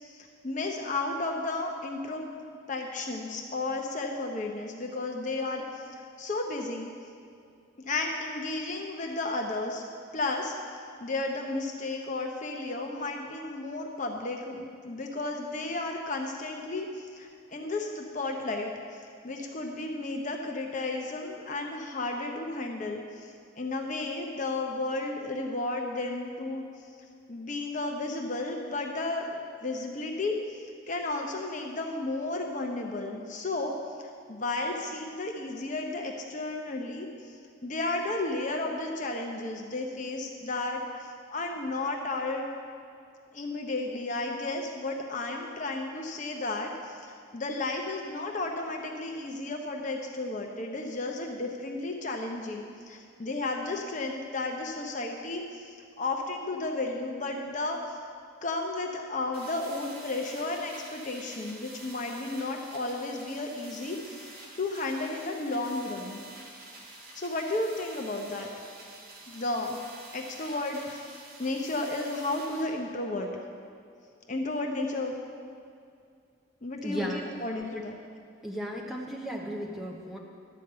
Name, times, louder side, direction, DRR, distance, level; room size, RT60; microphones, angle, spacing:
voice 1, 0.1-2.2 2.7-6.9 7.8-9.8 10.1-10.5 11.0-23.3 23.6-26.6 27.3-37.1 37.6-42.4 43.3-55.7 56.0-58.0 58.4-66.2 67.1-68.5 69.3-69.8 70.1-71.1 71.4-73.3 74.3-75.1 76.6-77.1 77.4-78.0, left 2 dB, 40° left, 2 dB, 0.7 m, -33 dB
sound 1, 59.3-72.6, right 2 dB, 50° right, 2.0 m, -48 dB
voice 2, 76.8-77.4 78.4-80.2, equal, ahead, -1 dB, 0.9 m, -35 dB
11.5 x 5.2 x 7.8 m, 2.4 s
head